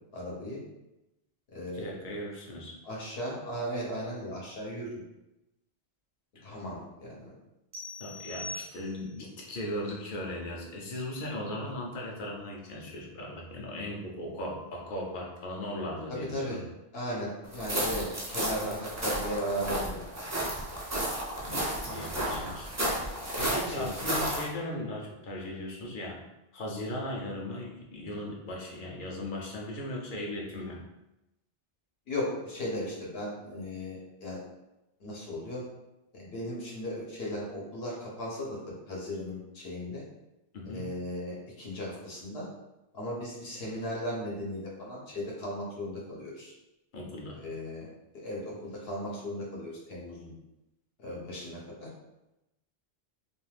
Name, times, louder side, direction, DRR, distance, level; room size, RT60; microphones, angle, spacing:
voice 1, 0.1-0.6 1.5-1.9 2.8-5.0 6.4-7.2 11.6-11.7 16.1-16.6 16.9-20.1 20.4-20.5 21.8-22.5 22.9-23.1 23.6-23.9 32.1-34.4 35.0-35.6 36.1-40.0 40.6-42.5 42.9-46.5 47.4-47.9 48.1-50.3 51.0-51.9, equal, 75° left, -4 dB, 1.1 m, -37 dB
voice 2, 1.7-2.8 6.4-6.5 8.0-16.6 21.4-22.7 23.4-26.2 26.5-30.8 40.5-40.9 46.9-47.4, left 1 dB, 60° left, -1 dB, 0.8 m, -37 dB
sound 1, 7.7-9.3, left 2 dB, 75° right, 0.8 m, -42 dB
sound 2, 17.5-24.5, right 1 dB, 25° right, 0.4 m, -32 dB
2.6 x 2.3 x 3.2 m, 0.94 s
omnidirectional pair, 1.0 m